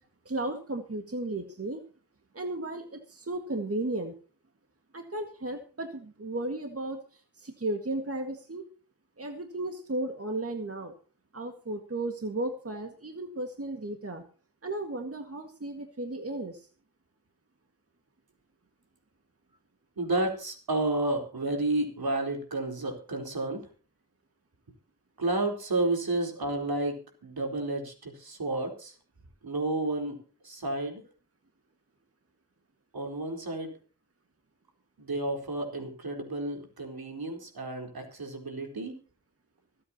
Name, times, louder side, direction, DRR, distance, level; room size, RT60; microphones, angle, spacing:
voice 1, 0.3-1.8 2.3-4.1 4.9-8.6 9.2-10.9 11.3-14.2 14.6-16.7, right 2 dB, 35° right, 5 dB, 1.9 m, -34 dB
voice 2, 20.0-23.6 25.2-28.9 29.4-30.2 30.4-31.0 32.9-33.7 35.0-38.9, right 2 dB, 65° right, 3 dB, 4.1 m, -31 dB
25.0 x 8.5 x 2.9 m, 0.40 s
cardioid pair, 55°, 39 cm